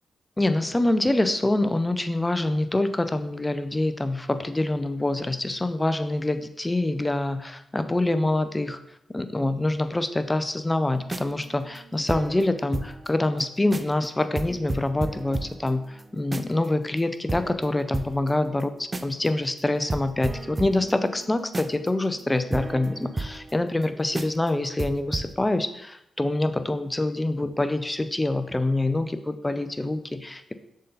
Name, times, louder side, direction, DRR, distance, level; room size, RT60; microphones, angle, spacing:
voice 1, 0.4-8.8 9.1-30.5, left 2 dB, 20° left, 11 dB, 0.5 m, -25 dB
sound 1, 11.0-13.1 13.4-13.5 13.7-14.1 14.4-16.7 17.0-17.1 17.3-19.3 19.6-19.7 19.9-23.9 24.1-24.5 24.8-25.3, right 2 dB, 30° right, 0.4 m, -34 dB
6.5 x 3.9 x 3.9 m, 0.79 s
cardioid pair, 55°, 0 cm